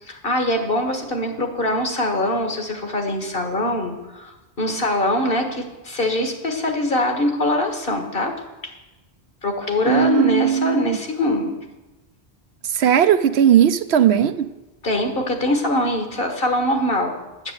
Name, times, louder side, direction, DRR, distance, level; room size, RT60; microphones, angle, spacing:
voice 1, 0.0-8.3 8.6-8.7 9.4-11.5 14.8-17.1, left 1 dB, 60° left, 4 dB, 1.9 m, -23 dB
voice 2, 9.9-10.8 12.7-14.5, right 9 dB, 80° right, 10 dB, 0.8 m, -17 dB
9.7 x 8.1 x 8.1 m, 1.1 s
omnidirectional pair, 1.1 m